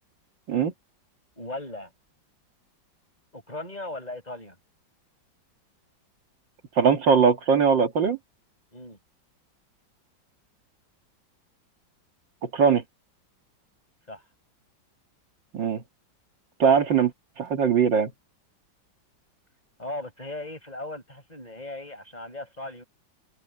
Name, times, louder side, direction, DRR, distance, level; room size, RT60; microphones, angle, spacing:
voice 1, 1.4-1.9 3.3-4.6 8.7-9.0 14.1-14.2 19.8-22.8, left 2 dB, 20° left, 7.3 m, -37 dB
voice 2, 6.8-8.2 12.4-12.8 15.5-15.8 16.6-17.1 17.4-18.1, right 6 dB, 75° right, 2.7 m, -20 dB
open air
omnidirectional pair, 2.0 m